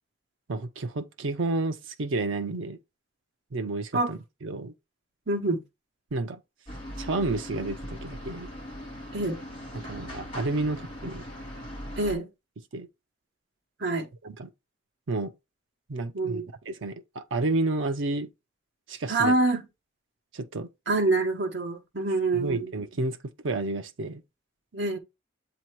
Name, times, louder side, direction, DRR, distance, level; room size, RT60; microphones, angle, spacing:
voice 1, 0.5-2.8 3.5-4.7 6.1-6.4 7.0-8.5 9.7-11.2 12.7-12.9 14.2-14.5 15.1-15.3 15.9-18.3 18.9-19.3 20.3-20.7 22.3-24.2, right 2 dB, 75° right, 0.6 m, -31 dB
voice 2, 5.3-5.6 9.1-9.4 12.0-12.3 13.8-14.1 16.1-16.5 19.1-19.6 20.9-22.7 24.7-25.0, right 2 dB, 60° right, 1.1 m, -26 dB
sound 1, 6.7-12.1, equal, 25° left, 2.7 m, -40 dB
7.6 x 2.9 x 4.5 m
head